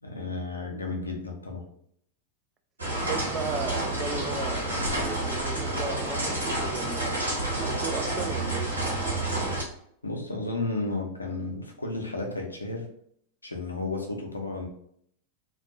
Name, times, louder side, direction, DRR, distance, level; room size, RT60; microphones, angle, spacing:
voice 1, 0.0-1.7 10.0-12.9 13.4-14.7, left 2 dB, 80° left, 1 dB, 0.5 m, -33 dB
sound 1, 2.8-9.6, right 1 dB, 75° right, 1.1 m, -29 dB
voice 2, 3.0-7.2 7.6-8.8, right 5 dB, 25° right, 6 dB, 0.3 m, -36 dB
2.5 x 2.2 x 2.4 m, 0.67 s
figure-of-eight pair, 90°, 0 cm